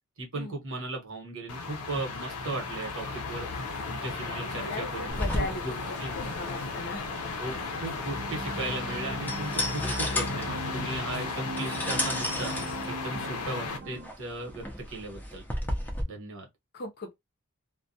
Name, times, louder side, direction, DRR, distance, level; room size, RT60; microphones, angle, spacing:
voice 1, 0.2-3.5 3.9-6.1 7.4-12.5 12.9-15.4 16.1-16.4, right 2 dB, 60° right, 1.1 m, -37 dB
sound 1, 1.5-13.8, left 4 dB, 85° left, 0.6 m, -35 dB
voice 2, 4.2-6.0 6.4-7.1 16.7-17.2, left 2 dB, 45° left, 0.6 m, -38 dB
sound 2, 5.1-16.0, left 1 dB, 10° left, 0.5 m, -35 dB
sound 3, 7.9-14.1, right 3 dB, 40° right, 0.5 m, -41 dB
2.2 x 2.1 x 2.6 m
head